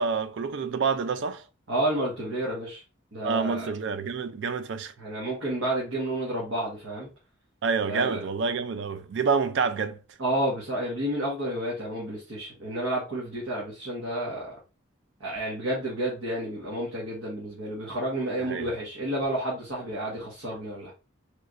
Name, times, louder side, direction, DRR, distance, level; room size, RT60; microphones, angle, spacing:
voice 1, 0.0-1.4 3.2-4.9 7.6-10.0 18.4-18.7, right 5 dB, 60° right, 0.3 m, -27 dB
voice 2, 1.7-2.8 3.1-3.7 5.0-7.1 7.8-8.2 10.2-14.5 15.2-20.9, right 1 dB, 85° right, 1.1 m, -30 dB
3.2 x 3.0 x 2.4 m
head